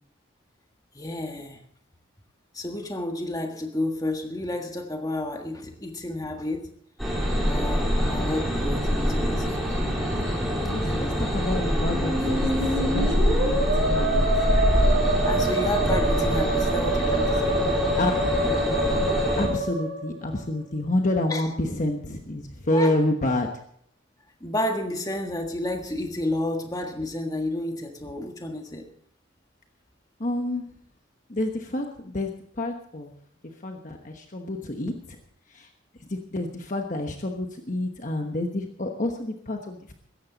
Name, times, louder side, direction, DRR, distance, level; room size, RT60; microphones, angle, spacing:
voice 1, 0.9-1.6 2.5-6.7 7.5-9.6 15.2-17.6 21.3-21.5 22.7-23.0 24.4-28.9, left 1 dB, 20° left, 4 dB, 1.6 m, -31 dB
sound 1, 7.0-19.5, equal, ahead, 4.2 m, -25 dB
voice 2, 10.7-14.2 18.0-18.1 19.4-23.5 30.2-30.7 31.3-32.3 32.6-33.1 33.6-35.2 35.5-35.7 36.1-39.9, left 1 dB, 40° left, 3 dB, 1.1 m, -28 dB
Musical instrument, 11.8-20.6, right 1 dB, 40° right, 5.2 m, -26 dB
17.0 x 14.0 x 4.1 m, 0.67 s
head